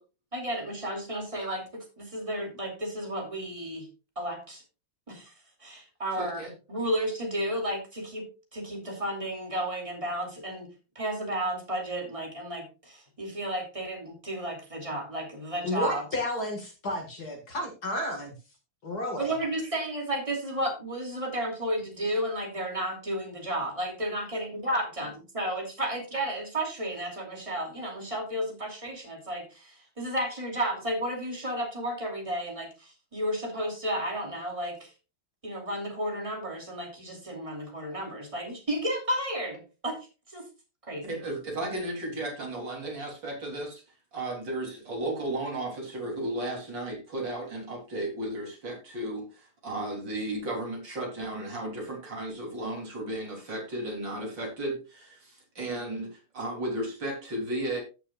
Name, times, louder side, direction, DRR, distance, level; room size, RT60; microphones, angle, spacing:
voice 1, 0.3-3.9 4.2-4.6 5.1-5.3 5.6-6.4 6.7-8.3 8.5-10.7 10.9-16.0 19.2-34.9 35.4-40.0 40.3-40.5 40.9-41.2, right 1 dB, 15° right, 1 dB, 2.6 m, -32 dB
voice 2, 6.2-6.5 41.0-43.8 44.1-57.8, right 1 dB, 55° right, -1 dB, 4.0 m, -34 dB
voice 3, 15.6-18.3 18.8-19.4, left 1 dB, 45° left, 3 dB, 2.4 m, -32 dB
15.5 x 6.7 x 2.4 m, 0.31 s
omnidirectional pair, 2.4 m